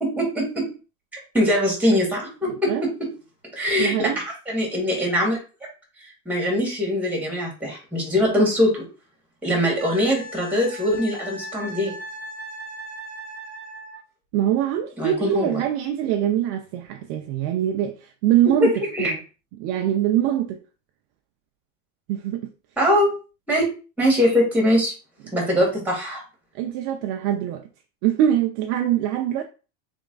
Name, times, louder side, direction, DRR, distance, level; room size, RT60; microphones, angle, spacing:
voice 1, 0.0-0.7 1.3-3.1 3.5-5.4 6.0-8.8 9.4-11.9 15.0-15.6 18.6-19.1 22.8-23.1 23.5-23.6 24.0-24.9 25.3-26.2, equal, 5° right, 1.7 m, -22 dB
voice 2, 2.5-2.9 3.8-4.2 14.3-18.7 19.0-19.2 19.6-20.6 22.1-22.5 26.5-27.6 28.0-29.4, right 11 dB, 50° right, 0.4 m, -23 dB
Wind instrument woodwind instrument, 9.8-14.0 16.7-16.8, equal, 20° right, 1.1 m, -38 dB
3.6 x 3.1 x 3.8 m
supercardioid pair, 150°, 46 cm